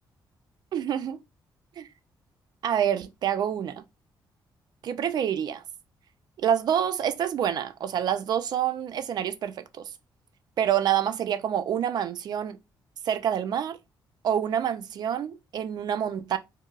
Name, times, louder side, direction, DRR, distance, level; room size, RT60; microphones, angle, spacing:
voice 1, 0.7-1.2 1.8-1.9 2.6-3.8 4.8-5.6 6.4-9.9 10.6-12.6 13.0-13.8 14.2-16.4, right 9 dB, 55° right, 0.4 m, -27 dB
4.5 x 2.0 x 2.4 m
cardioid pair, 165°, 8 cm